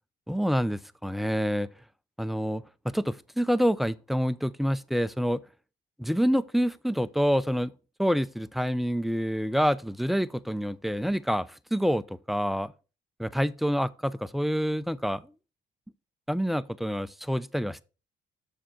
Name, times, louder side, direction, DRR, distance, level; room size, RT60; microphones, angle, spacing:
voice 1, 0.3-1.7 2.2-5.4 6.0-7.7 8.0-12.7 13.2-15.3 16.3-17.8, equal, ahead, 0.4 m, -27 dB
6.9 x 6.4 x 4.4 m
cardioid pair, 90°, 20 cm